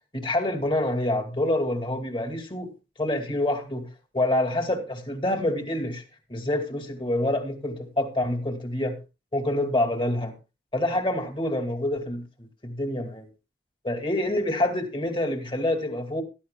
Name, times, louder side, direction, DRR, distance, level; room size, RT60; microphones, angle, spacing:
voice 1, 0.1-2.7 3.0-3.9 4.1-6.0 6.3-9.0 9.3-10.3 10.7-12.2 12.6-13.3 13.8-16.2, left 1 dB, 30° left, 2.3 m, -26 dB
16.0 x 13.5 x 2.3 m
head